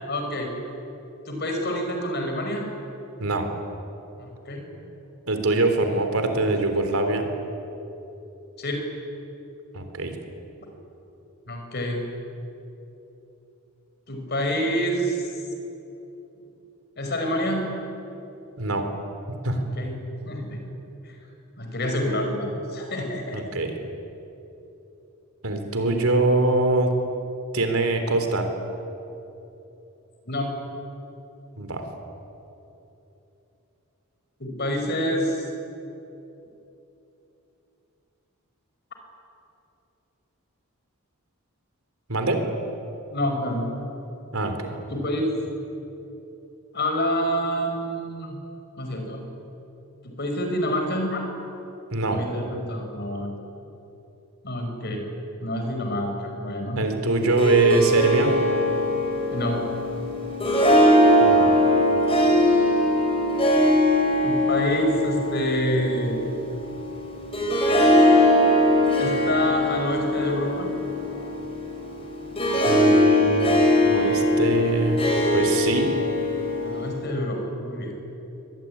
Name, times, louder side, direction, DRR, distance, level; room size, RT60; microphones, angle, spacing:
voice 1, 0.1-0.5 1.3-2.7 4.2-4.7 8.6-8.9 11.5-12.0 14.1-15.2 17.0-17.8 19.5-20.6 21.0-21.2 21.6-23.4 30.3-30.5 34.4-35.5 43.1-43.7 44.9-45.3 46.7-48.4 48.8-49.2 50.0-51.3 52.1-53.3 54.4-55.1 55.4-56.8 59.3-59.6 64.2-66.2 69.0-70.7 76.6-77.9, equal, 50° left, 3 dB, 5.4 m, -27 dB
voice 2, 5.3-7.2 9.7-10.2 18.6-18.9 19.4-19.6 23.3-23.7 25.4-26.9 27.5-28.5 31.6-31.8 42.1-42.4 44.3-44.6 51.9-52.2 56.8-58.3 61.2-61.5 72.7-73.6 73.9-75.0 75.3-75.9, right 2 dB, 80° right, 5 dB, 3.6 m, -23 dB
Harp, 57.2-77.0, equal, 25° left, 5.7 m, -21 dB
24.5 x 20.5 x 9.8 m, 3.0 s
head